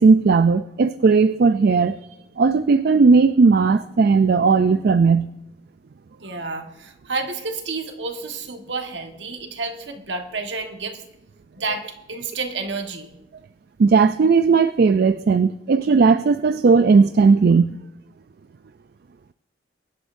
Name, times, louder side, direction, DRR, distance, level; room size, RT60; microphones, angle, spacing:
voice 1, 0.0-2.0 2.4-5.3 13.8-17.8, right 4 dB, 55° right, 12 dB, 0.3 m, -16 dB
voice 2, 6.2-11.0 11.5-13.1, right 3 dB, 70° right, 5 dB, 1.5 m, -30 dB
23.5 x 11.5 x 2.6 m, 0.87 s
head